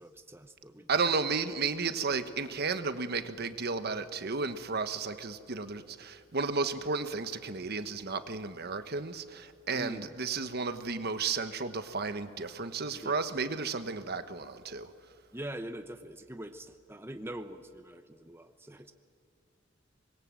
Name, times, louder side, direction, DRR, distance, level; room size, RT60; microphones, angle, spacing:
voice 1, 0.0-1.2 9.7-10.1 13.0-13.2 15.3-18.9, right 1 dB, 10° right, 7 dB, 0.9 m, -43 dB
voice 2, 0.9-14.9, right 4 dB, 55° right, 9 dB, 1.3 m, -33 dB
25.0 x 22.0 x 7.7 m, 2.3 s
head